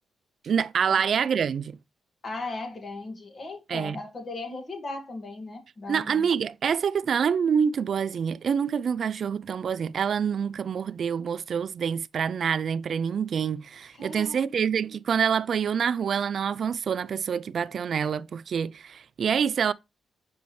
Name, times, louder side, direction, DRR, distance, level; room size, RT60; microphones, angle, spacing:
voice 1, 0.4-1.8 3.7-4.0 5.9-19.7, right 7 dB, 60° right, 0.3 m, -26 dB
voice 2, 2.2-6.3 13.9-14.4, left 2 dB, 45° left, 1.9 m, -37 dB
7.0 x 5.1 x 3.1 m
cardioid pair, 90°, 0 cm